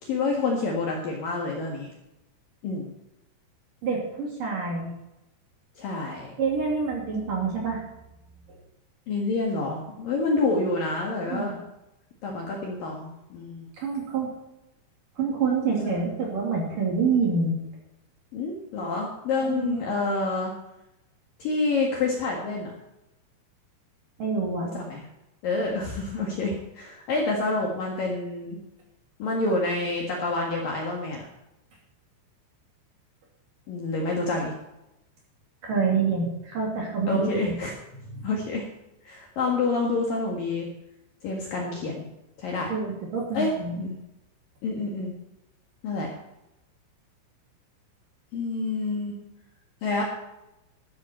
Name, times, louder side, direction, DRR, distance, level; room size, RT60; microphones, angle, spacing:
voice 1, 0.0-1.9 2.6-2.9 5.8-6.3 9.1-11.5 12.2-13.7 15.6-16.0 18.3-20.5 21.4-22.7 24.7-25.0 25.4-28.6 29.2-31.2 33.7-34.5 37.1-37.7 38.2-38.6 39.0-40.7 41.2-42.0 42.4-42.7 43.3-43.5 43.8-44.0 44.6-45.1 45.8-46.1 48.3-49.1 49.8-50.0, left 3 dB, 60° left, -1 dB, 2.6 m, -28 dB
voice 2, 3.8-4.9 6.4-7.8 8.5-8.6 11.3-11.6 13.8-14.3 15.2-17.5 19.4-19.9 24.2-24.7 35.6-37.5 37.9-38.3 42.7-43.8, right 5 dB, 50° right, -2 dB, 3.6 m, -27 dB
12.5 x 12.5 x 4.4 m, 0.91 s
omnidirectional pair, 5.9 m